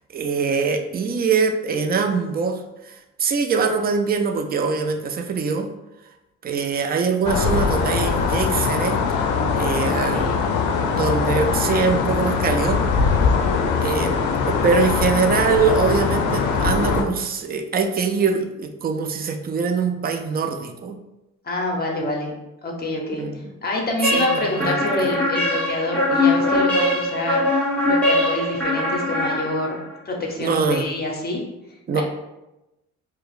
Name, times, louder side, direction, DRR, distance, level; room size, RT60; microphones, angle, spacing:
voice 1, 0.1-5.7 6.4-9.0 9.6-10.6 10.9-12.8 13.8-14.1 14.5-21.0 23.2-23.5 24.0-25.1 30.4-30.9 31.9-32.0, right 5 dB, 30° right, 6 dB, 0.4 m, -23 dB
sound 1, 7.2-17.0, left 5 dB, 80° left, 0.5 m, -21 dB
voice 2, 10.0-10.4 21.4-22.3 22.6-23.2 23.6-27.4 27.8-29.8 30.1-31.4 31.9-32.0, left 2 dB, 30° left, 0 dB, 0.8 m, -26 dB
sound 2, 24.0-29.9, left 1 dB, 5° left, 0.8 m, -21 dB
4.6 x 2.0 x 2.4 m, 0.96 s
cardioid pair, 90°, 30 cm